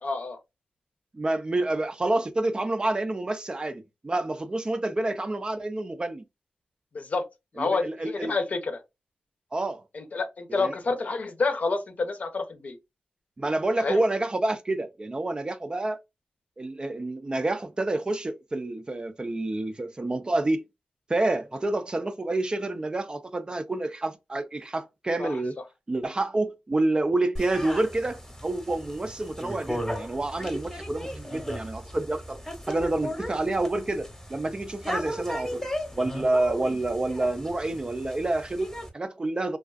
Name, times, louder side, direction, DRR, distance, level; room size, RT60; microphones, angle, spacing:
voice 1, 0.0-0.4 6.9-7.2 7.5-8.8 9.9-12.8 13.8-14.0 25.2-25.4, left 3 dB, 55° left, 0.6 m, -28 dB
voice 2, 1.1-6.2 7.6-8.4 9.5-9.8 10.5-10.7 13.4-16.0 16.6-20.6 21.1-25.6 25.9-35.6 35.9-39.6, right 2 dB, 30° right, 0.4 m, -28 dB
sound 1, 27.4-38.9, equal, 10° left, 0.8 m, -36 dB
2.4 x 2.3 x 2.3 m
cardioid pair, 65°, 3 cm